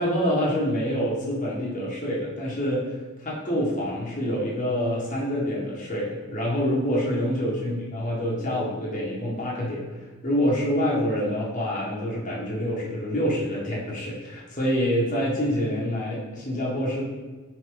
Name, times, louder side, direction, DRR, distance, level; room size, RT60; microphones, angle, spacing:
voice 1, 0.0-2.9 3.2-9.8 10.2-17.0, equal, 35° left, -5 dB, 1.6 m, -26 dB
9.6 x 4.1 x 3.9 m, 1.3 s
head